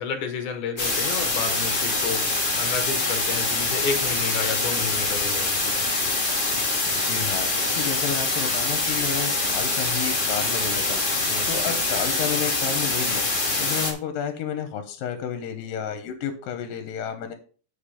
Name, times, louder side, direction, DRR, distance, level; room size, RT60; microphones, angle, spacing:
voice 1, 0.0-5.8 11.3-11.5, left 6 dB, 65° left, 7 dB, 2.5 m, -31 dB
sound 1, 0.8-13.9, left 2 dB, 30° left, 0.9 m, -24 dB
voice 2, 6.9-13.2 13.6-17.3, left 8 dB, 80° left, 7 dB, 2.6 m, -31 dB
8.6 x 5.1 x 5.0 m, 0.39 s
omnidirectional pair, 4.0 m